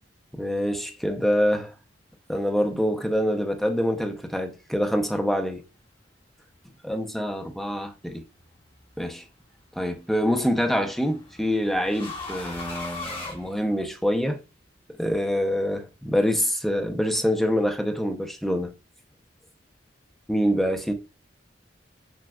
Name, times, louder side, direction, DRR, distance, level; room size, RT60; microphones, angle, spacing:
voice 1, 0.3-1.7 2.3-5.6 6.8-8.2 9.0-9.2 9.7-14.4 14.9-18.7 20.3-20.9, equal, ahead, 0.5 m, -25 dB
sound 1, 8.3-8.8 10.2-14.2, left 2 dB, 30° left, 1.3 m, -39 dB
6.0 x 2.2 x 2.2 m
head